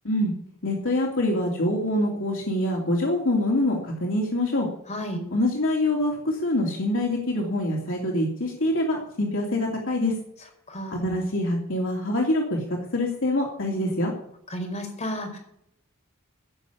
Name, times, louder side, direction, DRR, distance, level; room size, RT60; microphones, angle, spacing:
voice 1, 0.6-4.7 5.3-10.1 10.9-12.6 12.9-14.1, left 1 dB, 60° left, -1 dB, 2.8 m, -25 dB
voice 2, 4.9-5.2 10.7-11.1 14.5-15.4, equal, 30° left, 1 dB, 5.1 m, -32 dB
16.5 x 6.5 x 8.5 m, 0.72 s
head